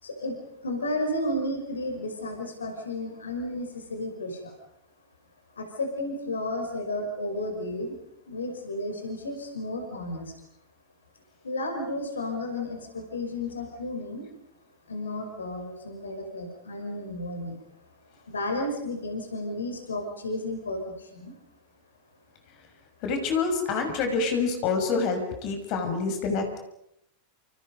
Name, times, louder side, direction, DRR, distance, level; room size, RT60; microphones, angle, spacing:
voice 1, 0.0-0.4 0.6-4.5 5.6-8.0 8.3-10.3 11.4-14.3 14.9-17.6 18.3-21.3, left 1 dB, 75° left, 4 dB, 5.4 m, -32 dB
voice 2, 23.0-26.6, left 4 dB, 45° left, 5 dB, 6.0 m, -27 dB
29.0 x 28.5 x 5.4 m, 0.80 s
figure-of-eight pair, 85°, 0 cm